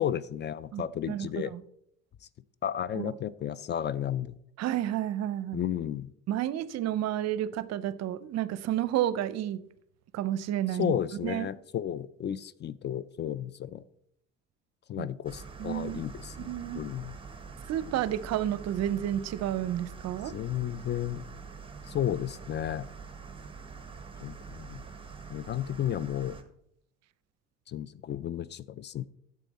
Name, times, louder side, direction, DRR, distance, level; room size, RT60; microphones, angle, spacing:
voice 1, 0.0-1.5 2.6-4.3 5.5-6.1 10.8-13.8 14.9-17.2 20.2-21.2 21.9-22.9 24.2-24.8 25.3-26.4 27.7-29.1, left 10 dB, 35° left, 19 dB, 0.4 m, -33 dB
voice 2, 0.7-1.6 3.0-3.1 4.6-5.6 6.3-9.6 10.1-11.0 11.2-11.5 15.0-15.1 15.6-16.0 16.4-16.8 17.7-20.3, right 12 dB, 60° right, 17 dB, 0.6 m, -31 dB
sound 1, 15.2-26.4, right 5 dB, 15° right, 1.2 m, -45 dB
9.1 x 7.5 x 4.1 m, 0.74 s
supercardioid pair, 85°, 31 cm